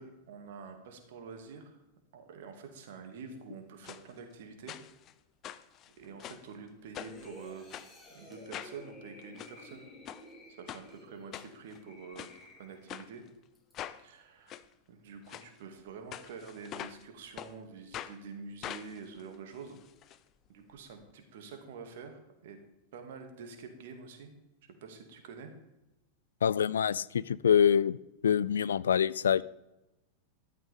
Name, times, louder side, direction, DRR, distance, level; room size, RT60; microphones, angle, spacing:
voice 1, 0.0-1.8 2.1-4.7 6.0-7.7 8.1-9.9 10.5-13.2 14.0-19.8 20.5-22.6 22.9-24.3 24.8-25.5, right 5 dB, 55° right, 5 dB, 2.2 m, -47 dB
sound 1, 3.8-4.0 4.7-5.1 5.4-6.5 6.9-7.3 7.7-7.9 8.5-8.8 9.2-9.5 10.1-10.2 10.7-10.8 11.3-11.8 12.2-12.3 12.9-13.1 13.7-14.0 14.5-14.6 15.3-15.5 16.1-17.0 17.4-17.5 17.9-18.2 18.6-20.2 20.5-20.6 20.8-20.9, left 11 dB, 35° left, 0.7 m, -43 dB
sound 2, 7.0-13.1 13.6-13.7, left 1 dB, 10° left, 5.7 m, -53 dB
voice 2, 26.4-28.0 28.2-29.4, left 8 dB, 65° left, 20 dB, 0.3 m, -25 dB
13.5 x 13.0 x 3.6 m, 0.96 s
figure-of-eight pair, 90°, 0 cm